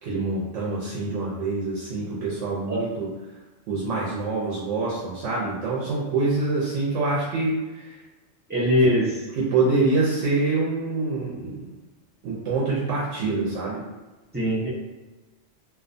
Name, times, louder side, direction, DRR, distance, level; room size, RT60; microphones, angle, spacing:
voice 1, 0.0-3.1 3.7-8.0 8.8-8.9 9.3-11.7 12.2-13.8, right 3 dB, 85° right, -6 dB, 0.9 m, -26 dB
voice 2, 8.5-9.1 14.3-14.7, equal, 10° right, -8 dB, 0.5 m, -21 dB
2.4 x 2.2 x 2.5 m, 1.1 s
omnidirectional pair, 1.2 m